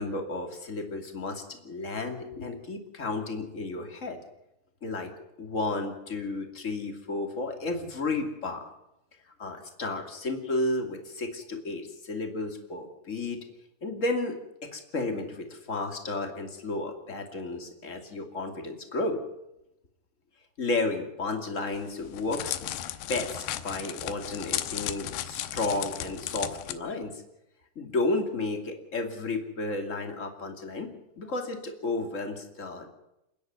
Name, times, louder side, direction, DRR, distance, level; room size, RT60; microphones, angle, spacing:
voice 1, 0.0-4.2 4.8-5.1 5.4-8.7 9.4-13.4 13.8-19.2 20.6-22.7 23.1-27.2 27.8-30.9 31.2-32.9, left 2 dB, 25° left, 4 dB, 2.1 m, -32 dB
Crackle, 21.8-26.7, left 12 dB, 85° left, 3.1 m, -35 dB
29.5 x 10.5 x 9.4 m, 0.87 s
omnidirectional pair, 4.7 m